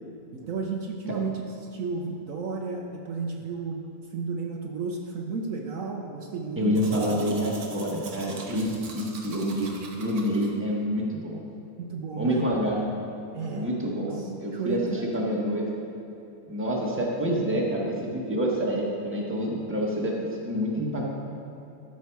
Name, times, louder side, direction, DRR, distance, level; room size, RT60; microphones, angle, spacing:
voice 1, 0.3-1.4 1.7-3.8 4.1-6.7 11.8-12.5 13.3-13.7 14.1-15.0, right 4 dB, 65° right, 1 dB, 1.2 m, -32 dB
voice 2, 6.6-11.4 12.2-12.9 13.5-15.8 16.5-21.0, equal, 10° right, -3 dB, 1.3 m, -27 dB
Domestic sounds home sounds, 6.8-10.5, right 4 dB, 85° right, 1.5 m, -43 dB
13.0 x 6.4 x 4.7 m, 2.8 s
omnidirectional pair, 1.6 m